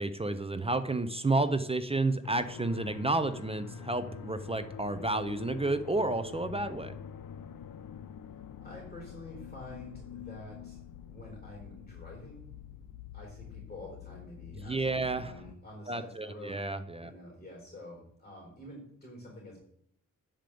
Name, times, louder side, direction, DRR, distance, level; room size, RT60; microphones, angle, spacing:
voice 1, 0.0-6.9 14.5-15.3 15.9-17.1, right 2 dB, 20° right, 11 dB, 0.6 m, -31 dB
sound 1, 2.2-15.5, left 8 dB, 85° left, 0.7 m, -46 dB
voice 2, 8.6-10.8 11.1-12.8 13.1-16.6 17.0-19.6, left 1 dB, 20° left, -2 dB, 4.3 m, -48 dB
8.9 x 5.2 x 7.7 m, 0.71 s
wide cardioid pair, 110°, 33 cm